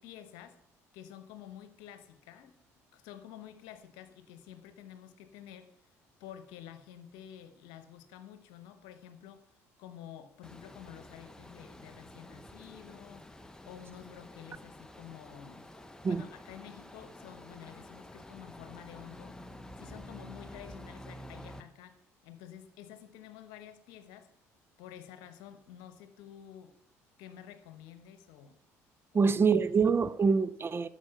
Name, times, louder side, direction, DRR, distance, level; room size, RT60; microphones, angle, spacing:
voice 1, 0.0-0.6 0.9-2.6 2.9-5.7 6.2-9.4 9.8-13.3 13.7-15.7 16.1-19.4 19.8-24.3 24.8-26.7 27.2-28.6 29.1-29.3 29.7-29.8, left 10 dB, 70° left, 1.0 m, -50 dB
sound 1, 10.4-21.6, left 1 dB, 10° left, 1.0 m, -49 dB
voice 2, 29.1-30.9, right 5 dB, 30° right, 0.6 m, -25 dB
12.0 x 6.6 x 5.6 m
hypercardioid pair, 55°, 8 cm